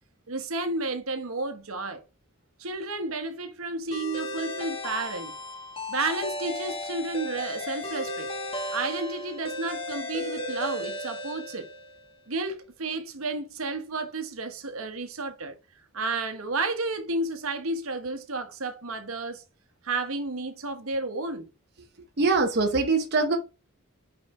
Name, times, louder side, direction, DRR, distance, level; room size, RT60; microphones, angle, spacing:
voice 1, 0.3-2.0 2.6-5.3 5.9-8.3 8.7-11.7 12.3-15.5 15.9-19.4 19.8-21.5, right 3 dB, 80° right, 1.2 m, -31 dB
sound 1, 3.9-12.0, left 1 dB, 25° left, 1.8 m, -35 dB
voice 2, 22.2-23.4, right 3 dB, 50° right, 1.0 m, -23 dB
5.6 x 4.9 x 4.7 m
head